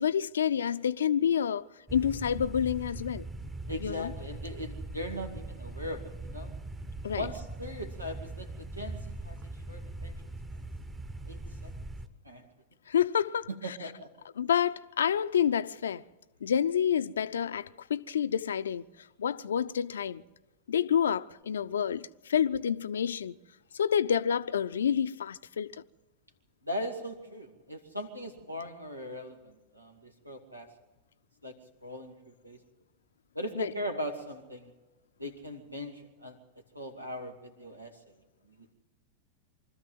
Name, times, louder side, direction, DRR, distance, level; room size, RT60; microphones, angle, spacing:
voice 1, 0.0-1.7 1.9-3.3 3.8-4.1 7.0-7.3 12.9-13.5 14.4-16.0 16.4-18.8 19.2-20.2 20.7-23.4 23.7-25.7 33.6-33.7, left 8 dB, 65° left, 0.6 m, -28 dB
sound 1, 1.9-12.1, right 2 dB, 15° right, 1.2 m, -41 dB
voice 2, 3.7-6.6 7.1-10.2 11.3-11.7 12.2-12.5 13.5-14.1 26.6-30.7 31.4-31.6 31.8-32.6 33.3-34.7 35.2-36.4 36.7-38.2 38.4-38.7, equal, 85° right, 2.3 m, -39 dB
25.0 x 14.0 x 7.7 m
figure-of-eight pair, 90°, 0 cm